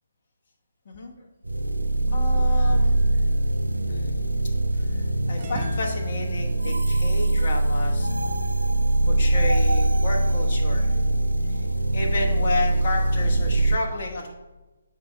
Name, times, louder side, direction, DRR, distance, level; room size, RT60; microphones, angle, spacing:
voice 1, 0.9-1.3 2.1-3.1 3.9-8.2 9.1-11.1 11.4-14.3, left 2 dB, 40° left, 0 dB, 0.9 m, -32 dB
sound 1, 1.5-13.8, right 1 dB, 75° right, 0.5 m, -22 dB
sound 2, 2.5-4.6 5.4-8.3, right 3 dB, 30° right, 0.7 m, -42 dB
7.8 x 4.8 x 3.1 m, 1.1 s
figure-of-eight pair, 140°, 0 cm